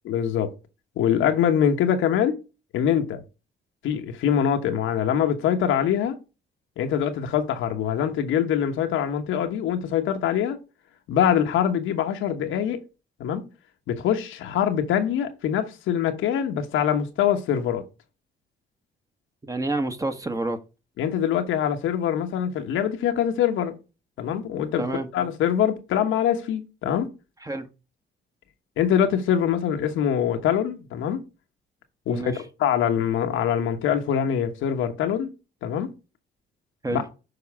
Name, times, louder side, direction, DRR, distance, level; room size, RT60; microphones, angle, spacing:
voice 1, 0.0-0.5 1.0-2.4 2.7-3.2 3.8-6.2 6.8-10.6 11.1-12.8 13.2-13.5 13.9-17.8 21.0-23.8 24.2-24.8 25.1-27.1 28.8-31.2 32.1-35.3 35.6-35.9 36.9-37.0, left 9 dB, 85° left, 1.1 m, -24 dB
voice 2, 19.5-20.6 24.8-25.1 27.4-27.7 32.1-32.4 36.8-37.0, right 2 dB, 15° right, 1.2 m, -28 dB
6.9 x 4.8 x 4.7 m
cardioid pair, 90°, 20 cm